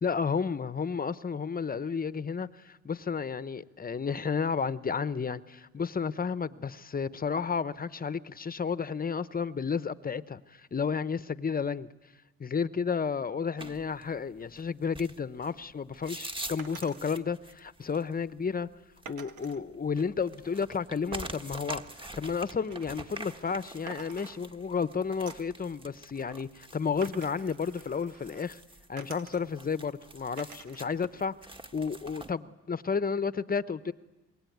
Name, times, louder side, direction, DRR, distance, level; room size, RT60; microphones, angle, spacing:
voice 1, 0.0-11.9 12.4-18.7 19.1-28.6 28.9-31.3 31.7-33.9, left 5 dB, 30° left, 0.8 m, -32 dB
sound 1, 13.6-32.3, right 2 dB, 15° right, 1.5 m, -46 dB
sound 2, 16.6-17.0 19.0-19.6 21.1-23.6 23.9-24.8 25.3-25.6 27.0-28.5 29.0-29.7 30.4-30.9 31.3-32.0, right 6 dB, 90° right, 1.5 m, -49 dB
25.5 x 22.0 x 9.3 m
cardioid pair, 90°, 30 cm